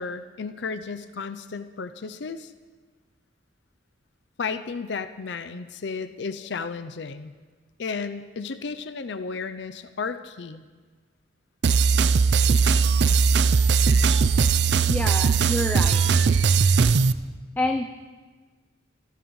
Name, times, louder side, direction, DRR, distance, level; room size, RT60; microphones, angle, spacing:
voice 1, 0.0-2.5 4.4-7.3 7.8-10.7, left 5 dB, 70° left, 10 dB, 0.5 m, -33 dB
sound 1, 11.6-17.1, right 5 dB, 65° right, 0.4 m, -19 dB
voice 2, 14.9-16.0 17.6-17.8, left 2 dB, 10° left, 3 dB, 0.5 m, -27 dB
26.5 x 13.0 x 3.2 m, 1.4 s
head